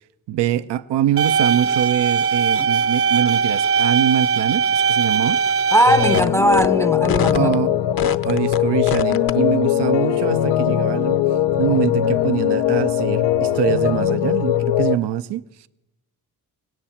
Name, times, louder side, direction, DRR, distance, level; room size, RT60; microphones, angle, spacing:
voice 1, 0.3-5.4 7.3-7.7 8.2-11.2 11.6-15.4, right 11 dB, 80° right, 0.7 m, -23 dB
sound 1, 1.2-6.2, right 5 dB, 35° right, 0.6 m, -20 dB
voice 2, 5.7-7.5, right 1 dB, 5° left, 0.6 m, -18 dB
sound 2, 5.9-15.0, left 11 dB, 85° left, 0.6 m, -20 dB
sound 3, 6.1-6.3 6.5-6.7 7.0-7.5 8.0-8.6 8.9-9.3, left 8 dB, 60° left, 0.9 m, -25 dB
19.0 x 17.0 x 4.4 m
supercardioid pair, 55°, 41 cm